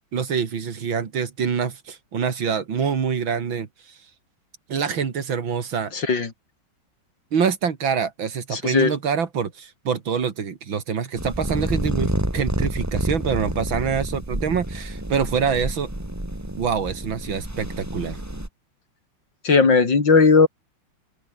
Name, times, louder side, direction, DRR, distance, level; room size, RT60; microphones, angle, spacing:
voice 1, 0.1-3.7 4.7-5.9 7.3-15.9 16.6-18.2, right 6 dB, 75° right, 2.9 m, -25 dB
voice 2, 5.9-6.3 8.5-8.9 19.4-20.5, left 4 dB, 65° left, 3.9 m, -17 dB
sound 1, 11.1-18.5, right 1 dB, 10° right, 2.8 m, -29 dB
open air
omnidirectional pair, 2.2 m